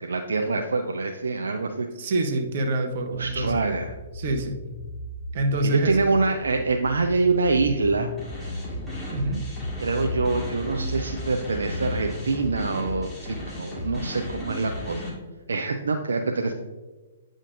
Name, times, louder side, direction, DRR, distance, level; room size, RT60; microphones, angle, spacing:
voice 1, 0.0-1.9 3.2-3.9 5.6-8.1 9.8-15.0 15.5-16.5, right 3 dB, 75° right, 4 dB, 0.4 m, -25 dB
voice 2, 2.0-3.6 4.1-4.5 5.3-6.0 9.1-9.4, right 2 dB, 55° right, 4 dB, 0.9 m, -26 dB
sound 1, 3.0-12.7, left 1 dB, 85° left, 1.7 m, -37 dB
sound 2, 8.2-15.1, left 1 dB, 10° left, 1.9 m, -35 dB
8.6 x 5.1 x 2.5 m, 1.2 s
figure-of-eight pair, 120°, 0 cm